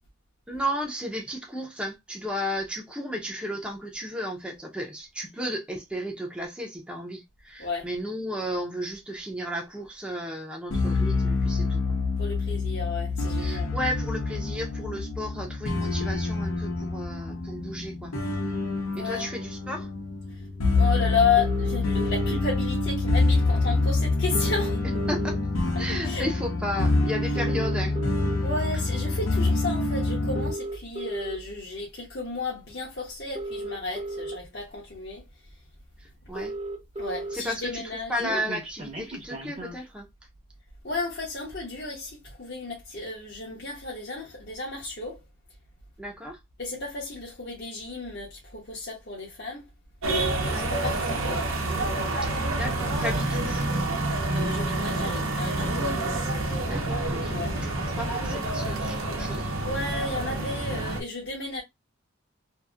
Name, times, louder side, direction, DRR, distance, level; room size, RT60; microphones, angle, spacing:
voice 1, 0.5-11.8 13.4-18.1 19.0-19.9 25.1-25.4 25.8-28.0 36.0-36.5 37.3-37.8 38.1-40.1 46.0-46.4 50.4-50.7 52.2-53.6 56.4-59.5, equal, 5° right, 0.6 m, -34 dB
sound 1, 10.7-30.5, left 3 dB, 85° left, 0.9 m, -26 dB
voice 2, 12.2-13.7 18.9-19.3 20.7-24.8 26.0-26.3 28.4-35.2 37.0-38.4 40.8-45.2 46.6-49.7 50.4-51.5 54.3-55.8 57.3-57.5 59.6-61.6, left 4 dB, 50° left, 0.8 m, -32 dB
sound 2, 21.4-22.4 23.6-23.7 23.9-24.0 24.2-25.6 26.1-26.4 27.2-28.4 29.1-29.3 30.2-31.4 32.6-32.7 33.2-34.4 35.0-35.1 35.4-35.5 35.8-35.9 36.1-37.4 37.7-39.8, right 2 dB, 30° right, 0.8 m, -35 dB
sound 3, 50.0-61.0, right 2 dB, 80° right, 0.9 m, -28 dB
2.8 x 2.6 x 2.4 m
head